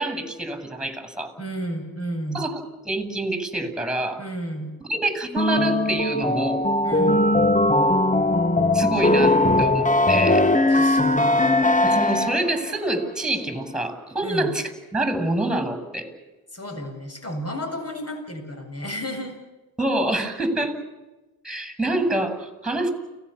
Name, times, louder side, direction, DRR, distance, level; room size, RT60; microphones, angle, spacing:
voice 1, 0.0-1.3 2.3-4.2 4.8-6.6 8.7-10.5 11.8-16.1 19.8-20.8 21.4-22.9, right 1 dB, ahead, 10 dB, 8.0 m, -26 dB
voice 2, 1.4-2.5 4.2-4.7 6.8-7.2 10.7-11.3 14.2-14.5 16.5-19.3, equal, 35° left, 4 dB, 8.0 m, -32 dB
sound 1, 5.4-12.6, left 2 dB, 15° left, 1.7 m, -19 dB
29.5 x 19.5 x 7.3 m, 1.1 s
supercardioid pair, 45°, 44 cm